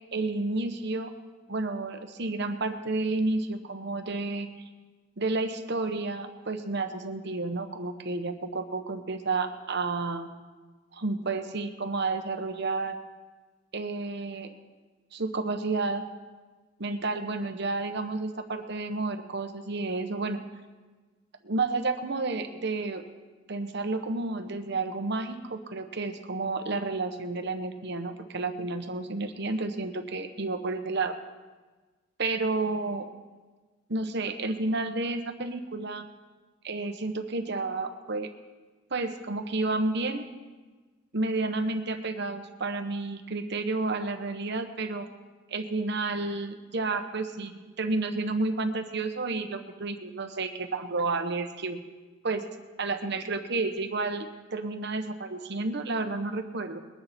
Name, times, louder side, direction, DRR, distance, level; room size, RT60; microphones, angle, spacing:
voice 1, 0.1-1.1 1.5-4.5 5.2-10.3 10.9-12.9 13.7-14.5 15.1-16.0 16.8-20.4 21.4-23.0 23.5-31.1 32.2-33.1 33.9-36.0 36.6-38.3 38.9-40.3 41.1-45.1 45.5-51.8 52.2-52.4 52.8-56.8, right 3 dB, 60° right, 7 dB, 1.2 m, -31 dB
21.5 x 9.9 x 4.4 m, 1.3 s
head